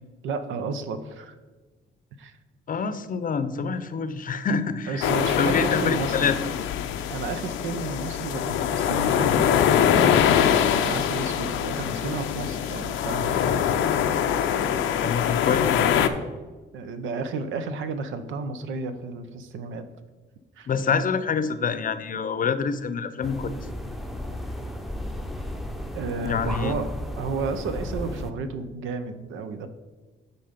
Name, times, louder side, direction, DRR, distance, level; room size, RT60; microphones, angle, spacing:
voice 1, 0.2-1.3 2.2-2.4 4.9-6.3 7.1-10.1 10.7-13.6 16.7-19.9 20.6-20.8 25.9-26.9 27.2-29.7, right 4 dB, 80° right, 10 dB, 0.8 m, -32 dB
voice 2, 2.7-5.0 5.4-6.4 15.0-15.9 20.7-23.6 26.2-26.7, left 6 dB, 45° left, 12 dB, 0.6 m, -26 dB
sound 1, 5.0-16.1, left 9 dB, 85° left, 0.6 m, -23 dB
sound 2, 23.2-28.3, left 1 dB, ahead, 0.7 m, -34 dB
9.2 x 4.2 x 5.1 m, 1.3 s
cardioid pair, 90°, 20 cm